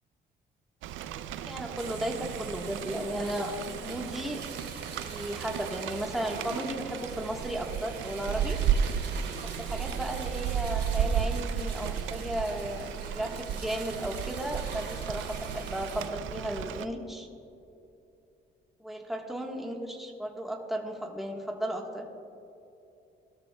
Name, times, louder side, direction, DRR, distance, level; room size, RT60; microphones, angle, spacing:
Rain, 0.8-16.8, right 8 dB, 80° right, 0.5 m, -34 dB
voice 1, 1.4-3.5 3.8-4.4 5.0-8.6 9.4-17.3 18.8-22.1, right 1 dB, ahead, 0 dB, 1.3 m, -35 dB
sound 1, 1.8-16.1, right 4 dB, 55° right, 2.9 m, -45 dB
17.5 x 12.5 x 2.3 m, 2.8 s
cardioid pair, 90°, 20 cm